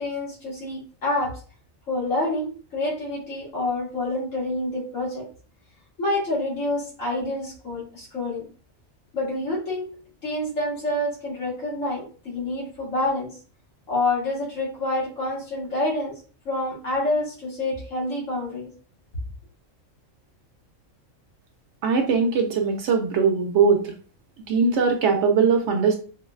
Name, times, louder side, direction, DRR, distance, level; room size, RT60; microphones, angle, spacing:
voice 1, 0.0-1.4 1.9-5.3 6.0-8.5 9.1-9.9 10.2-13.3 13.9-16.2 16.5-18.7, left 2 dB, 75° left, -5 dB, 1.9 m, -27 dB
voice 2, 21.8-23.9 24.5-26.0, right 5 dB, 70° right, 4 dB, 0.8 m, -20 dB
4.8 x 2.2 x 2.3 m, 0.40 s
omnidirectional pair, 1.4 m